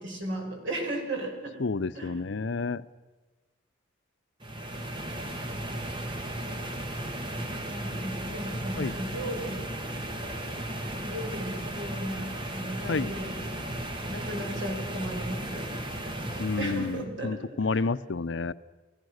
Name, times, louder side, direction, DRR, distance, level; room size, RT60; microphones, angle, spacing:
voice 1, 0.0-1.6 1.9-2.2 7.7-9.7 11.0-13.7 14.1-15.7 16.2-17.9, right 1 dB, 80° right, 2 dB, 5.9 m, -36 dB
voice 2, 1.6-2.8 8.7-8.9 12.9-13.1 16.4-18.5, left 3 dB, 75° left, 15 dB, 0.7 m, -30 dB
sound 1, 4.4-17.0, right 1 dB, 25° right, 1.7 m, -35 dB
29.5 x 16.5 x 6.5 m, 1.2 s
head